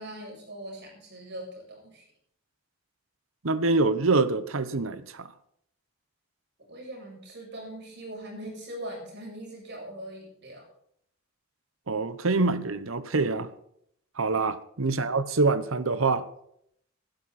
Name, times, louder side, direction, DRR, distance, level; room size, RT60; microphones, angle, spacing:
voice 1, 0.0-2.0 6.7-10.7 14.9-15.0, right 1 dB, 55° right, -1 dB, 7.0 m, -41 dB
voice 2, 3.4-5.3 11.9-13.5 14.2-16.3, right 3 dB, 75° right, 14 dB, 1.0 m, -25 dB
17.5 x 11.5 x 4.2 m, 0.71 s
head